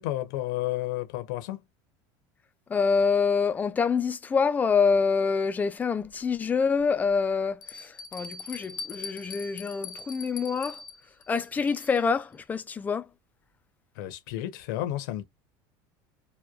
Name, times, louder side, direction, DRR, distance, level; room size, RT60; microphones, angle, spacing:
voice 1, 0.0-1.6 13.9-15.2, left 14 dB, 80° left, 0.9 m, -31 dB
voice 2, 2.7-10.8 11.3-13.1, left 5 dB, 15° left, 0.4 m, -26 dB
Bell, 6.0-6.1 6.8-6.9 7.6-12.2, left 5 dB, 45° left, 0.7 m, -42 dB
3.1 x 2.3 x 2.3 m
supercardioid pair, 140°, 11 cm